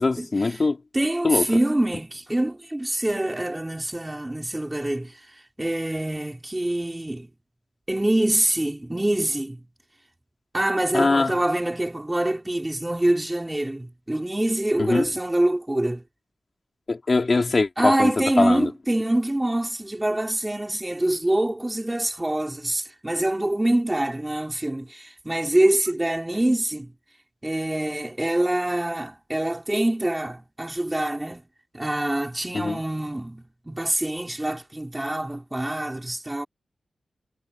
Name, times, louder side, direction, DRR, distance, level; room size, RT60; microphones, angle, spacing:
voice 1, 0.0-0.8 1.2-1.5 10.9-11.3 14.8-15.1 16.9-18.7 32.5-32.8, left 3 dB, 35° left, 3.6 m, -22 dB
voice 2, 0.9-5.2 5.6-7.3 7.9-9.6 10.5-16.0 17.8-26.9 27.4-31.4 31.7-36.5, right 1 dB, 10° right, 4.8 m, -25 dB
wide cardioid pair, 150°, 0 cm